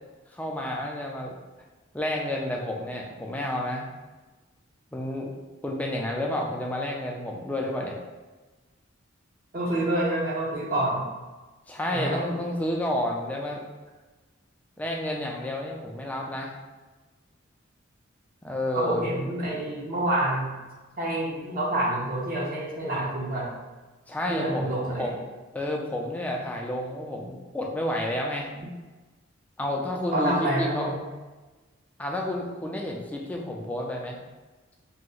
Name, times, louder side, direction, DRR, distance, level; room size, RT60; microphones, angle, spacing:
voice 1, 0.3-1.3 1.9-3.9 4.9-5.3 5.6-8.0 11.7-13.6 14.8-16.5 18.4-19.0 24.1-25.1 25.5-28.5 29.6-30.9 32.0-34.2, left 1 dB, 5° left, -1 dB, 0.3 m, -30 dB
voice 2, 9.5-11.0 11.9-12.2 18.7-20.6 21.0-23.5 24.3-25.1 28.6-28.7 30.1-31.0, right 1 dB, 45° right, -5 dB, 0.6 m, -27 dB
2.7 x 2.1 x 3.8 m, 1.2 s
head